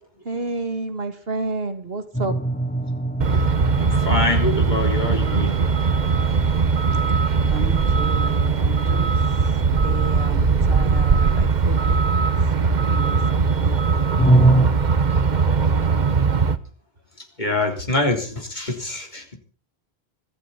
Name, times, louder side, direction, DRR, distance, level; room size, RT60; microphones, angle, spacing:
voice 1, 0.2-2.3 6.9-7.1 7.5-12.0 12.4-13.8, right 3 dB, 65° right, 7 dB, 2.4 m, -32 dB
sound 1, 2.1-11.7 14.2-14.6, right 1 dB, 10° left, 5.7 m, -26 dB
Truck, 3.2-16.6, right 5 dB, 45° right, 1.1 m, -20 dB
voice 2, 3.8-5.7 15.5-16.0 17.2-19.4, left 2 dB, 45° left, 2 dB, 3.7 m, -25 dB
25.0 x 13.5 x 4.1 m, 0.40 s
omnidirectional pair, 1.1 m